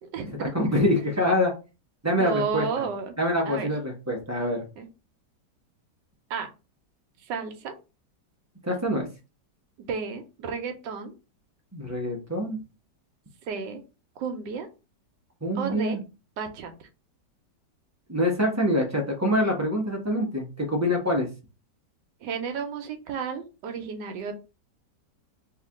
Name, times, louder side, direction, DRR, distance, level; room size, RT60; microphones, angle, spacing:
voice 1, 0.0-0.5 2.1-3.2 3.4-3.7 4.8-4.9 6.3-6.5 7.2-7.7 9.8-11.1 13.5-13.8 14.2-14.7 15.5-16.0 16.4-16.7 22.2-24.3, right 5 dB, 85° right, 6 dB, 1.3 m, -32 dB
voice 2, 0.5-1.5 2.0-2.8 3.2-4.6 8.6-9.1 11.7-12.6 15.4-16.0 18.1-21.3, left 1 dB, 20° right, 0 dB, 0.4 m, -25 dB
3.1 x 2.8 x 3.5 m, 0.30 s
omnidirectional pair, 1.9 m